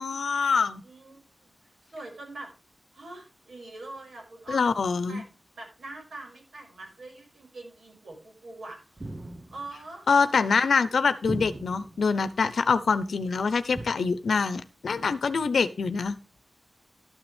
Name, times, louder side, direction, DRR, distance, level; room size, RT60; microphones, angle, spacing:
voice 1, 0.0-0.8 4.5-5.2 10.1-16.2, left 5 dB, 85° left, 12 dB, 0.8 m, -25 dB
voice 2, 0.8-1.5 1.9-2.5 2.9-4.8 5.1-9.1 9.5-10.3, right 2 dB, 80° right, 1 dB, 6.0 m, -43 dB
sound 1, 9.0-9.8 11.2-12.0 13.7-13.9, right 2 dB, 25° right, 1.1 m, -37 dB
12.5 x 9.0 x 3.4 m, 0.33 s
wide cardioid pair, 110°, 0 cm